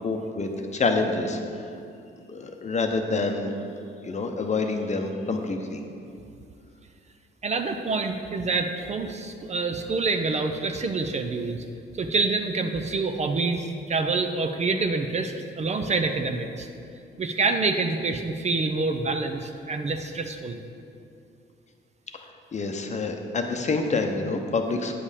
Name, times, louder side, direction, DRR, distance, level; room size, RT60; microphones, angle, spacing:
voice 1, 0.0-1.4 2.3-3.5 4.0-5.8 22.5-25.0, left 3 dB, 35° left, 4 dB, 0.8 m, -27 dB
voice 2, 7.4-11.6 12.0-16.7 17.2-20.6, right 3 dB, 35° right, 6 dB, 0.6 m, -27 dB
8.6 x 5.3 x 5.0 m, 2.5 s
cardioid pair, 90°, 20 cm